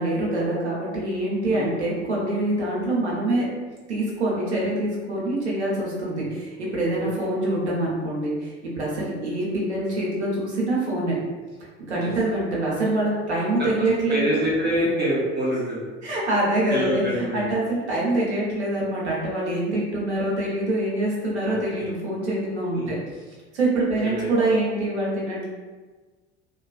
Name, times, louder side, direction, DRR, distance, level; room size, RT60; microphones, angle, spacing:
voice 1, 0.0-3.5 3.9-11.2 11.9-14.2 16.0-17.0 17.3-23.0 23.5-25.5, right 1 dB, 85° right, -5 dB, 0.8 m, -25 dB
voice 2, 7.0-7.4 12.0-12.1 13.6-15.9 16.7-17.5 21.4-21.9 22.7-22.9 24.0-24.3, equal, 30° right, -6 dB, 0.8 m, -27 dB
2.6 x 2.2 x 2.4 m, 1.3 s
figure-of-eight pair, 65°, 33 cm